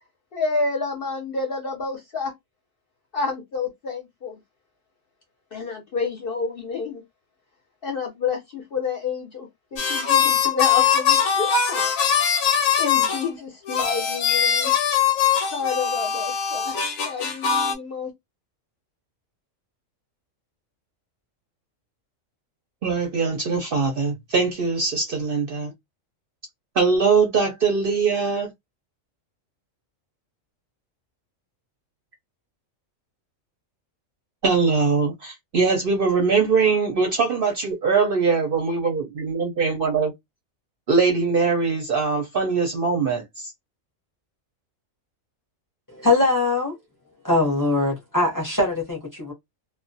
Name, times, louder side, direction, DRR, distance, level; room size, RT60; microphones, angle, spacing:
voice 1, 0.3-2.3 3.1-4.4 5.5-7.0 7.8-11.9 12.8-14.7 15.5-16.8 17.1-18.1, left 4 dB, 55° left, 0.7 m, -29 dB
sound 1, 9.8-13.3 13.7-17.7, left 8 dB, 85° left, 1.0 m, -21 dB
voice 2, 22.8-25.7 26.7-28.5 34.4-40.1 40.9-43.5, right 4 dB, 60° right, 0.6 m, -22 dB
voice 3, 45.9-46.7 47.2-49.3, left 2 dB, 20° left, 0.6 m, -22 dB
2.2 x 2.1 x 2.6 m
omnidirectional pair, 1.4 m